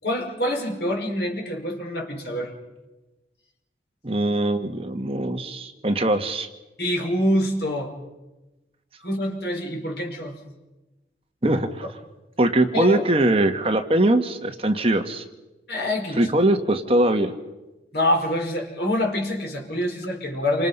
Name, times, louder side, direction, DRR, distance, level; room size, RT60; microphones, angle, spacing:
voice 1, 0.0-2.5 6.8-7.9 9.0-10.4 12.7-13.0 15.7-16.3 17.9-20.7, left 1 dB, 65° left, 1 dB, 4.9 m, -25 dB
voice 2, 4.0-6.5 11.4-11.9 12.4-15.2 16.2-17.3, right 1 dB, 35° right, 6 dB, 1.5 m, -21 dB
28.5 x 25.5 x 5.5 m, 1.1 s
head